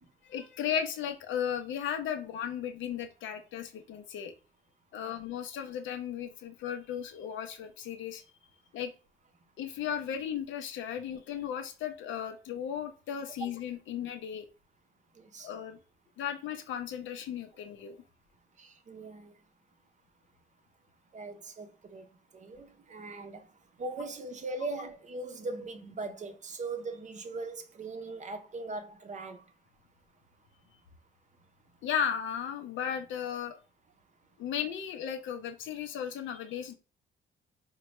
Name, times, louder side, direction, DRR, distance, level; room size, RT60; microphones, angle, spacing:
voice 1, 0.3-4.3 4.9-8.2 8.7-8.9 9.6-14.5 15.4-15.8 16.2-18.0 31.8-33.6 34.4-36.7, left 8 dB, 75° left, 0.6 m, -35 dB
voice 2, 15.2-15.5 18.6-19.3 21.1-22.1 22.3-23.5 23.8-29.5, right 3 dB, 40° right, 0.6 m, -40 dB
4.0 x 2.2 x 3.1 m
cardioid pair, 90°, 20 cm